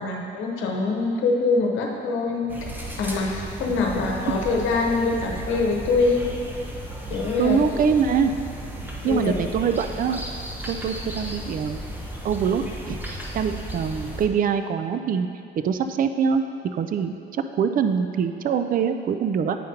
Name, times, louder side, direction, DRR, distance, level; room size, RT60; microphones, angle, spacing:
voice 1, 0.0-2.7 3.0-6.2 7.1-7.6 9.0-9.3, left 3 dB, 85° left, 0 dB, 0.9 m, -24 dB
sound 1, 2.5-14.3, right 1 dB, 10° right, 0.8 m, -35 dB
voice 2, 7.4-8.4 9.0-10.2 10.7-11.8 12.2-15.3 15.6-19.6, right 6 dB, 45° right, 9 dB, 0.4 m, -24 dB
9.2 x 5.0 x 2.8 m, 2.7 s
cardioid pair, 90°, 20 cm